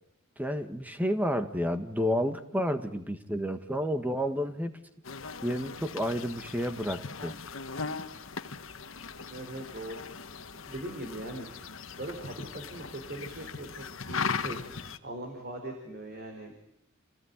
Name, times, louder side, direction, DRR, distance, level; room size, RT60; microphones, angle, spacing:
voice 1, 0.4-4.8 5.4-7.3, equal, 10° right, 8 dB, 1.6 m, -30 dB
sound 1, 5.0-15.0, left 5 dB, 65° left, 1.4 m, -39 dB
voice 2, 9.3-10.1 10.4-11.6 11.9-16.5, right 1 dB, 45° right, 3 dB, 4.3 m, -41 dB
29.5 x 18.0 x 9.6 m, 0.80 s
head